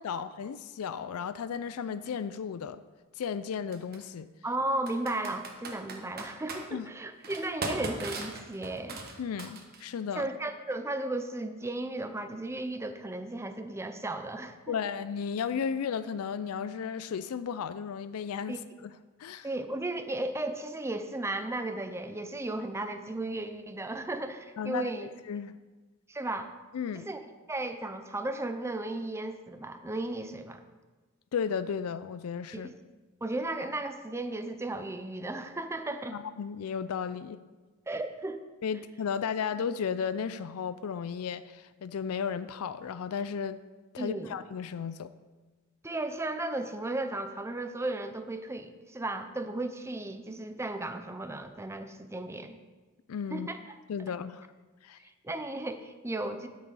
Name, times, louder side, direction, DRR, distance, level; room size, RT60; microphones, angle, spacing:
voice 1, 0.0-2.8 3.2-4.3 6.7-6.9 9.2-10.3 14.7-18.9 19.2-19.5 24.6-24.9 25.3-25.6 26.7-27.1 31.3-32.7 36.1-37.4 38.6-43.6 43.9-45.1 53.1-53.5 53.9-54.5 54.8-55.0, left 7 dB, 90° left, 14 dB, 0.4 m, -34 dB
Computer keyboard, 2.0-2.1 3.7-4.0 4.9-6.6 7.2-9.9, right 3 dB, 45° right, 1.2 m, -38 dB
voice 2, 4.4-9.0 10.1-14.7 18.5-18.6 19.4-25.1 26.1-26.5 26.9-27.2 27.5-30.6 32.5-32.7 33.2-36.2 37.9-38.4 44.0-44.3 45.8-52.6 53.3-53.6 55.2-56.5, right 2 dB, 15° right, 8 dB, 0.5 m, -35 dB
12.5 x 6.3 x 4.1 m, 1.3 s
head